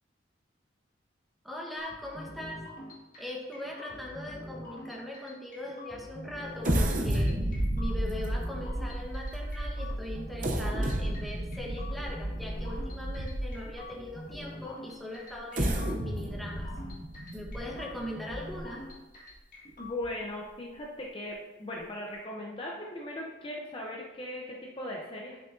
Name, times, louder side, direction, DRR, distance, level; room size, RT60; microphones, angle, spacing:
voice 1, 1.4-2.6 3.2-16.7 17.3-18.8, left 1 dB, ahead, -3 dB, 1.2 m, -40 dB
sound 1, 1.8-19.9, left 1 dB, 45° left, 1.8 m, -45 dB
sound 2, 6.6-13.7 14.3-14.4 15.3-18.8 19.3-19.4 19.8-20.1, right 1 dB, 45° right, 0.8 m, -32 dB
voice 2, 19.8-25.5, left 1 dB, 30° left, -2 dB, 0.8 m, -38 dB
8.7 x 6.5 x 2.7 m, 1.1 s
head